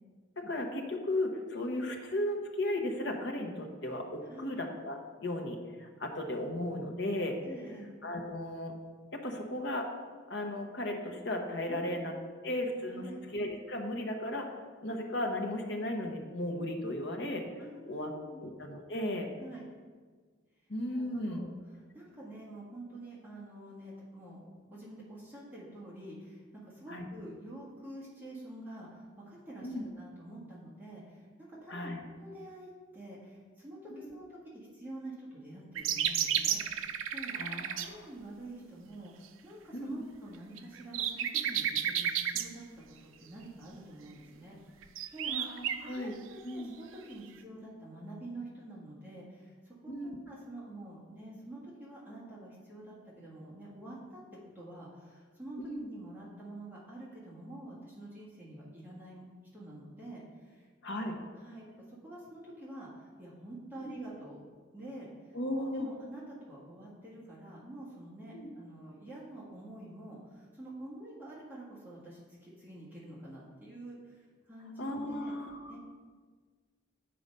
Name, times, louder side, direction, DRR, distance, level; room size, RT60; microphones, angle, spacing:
voice 1, 0.4-7.4 8.0-8.7 9.1-9.9 10.3-12.1 12.4-13.0 13.3-14.5 14.8-17.4 17.9-18.1 18.4-19.3 20.7-21.5 26.9-27.1 29.6-29.8 31.7-32.0 34.0-34.1 37.4-38.1 39.7-40.0 45.3-46.1 46.4-46.7 49.9-50.2 55.6-55.9 60.8-61.1 63.8-63.9 65.3-65.9 68.3-68.5 74.8-75.7, left 1 dB, 60° left, 3 dB, 1.0 m, -35 dB
voice 2, 4.2-4.6 7.4-7.9 11.7-12.0 12.9-13.2 17.6-18.4 19.4-19.7 20.9-21.5 21.7-24.4 24.7-36.6 37.1-37.3 37.8-42.6 43.0-45.4 45.8-54.2 54.5-59.2 59.5-61.0 61.3-64.4 64.7-75.3 75.7-75.8, right 1 dB, 10° right, -7 dB, 1.6 m, -47 dB
sound 1, 35.8-37.9 40.6-42.5 44.8-45.8 47.1-47.2, right 9 dB, 85° right, 0.4 m, -32 dB
7.7 x 4.8 x 5.4 m, 1.5 s
head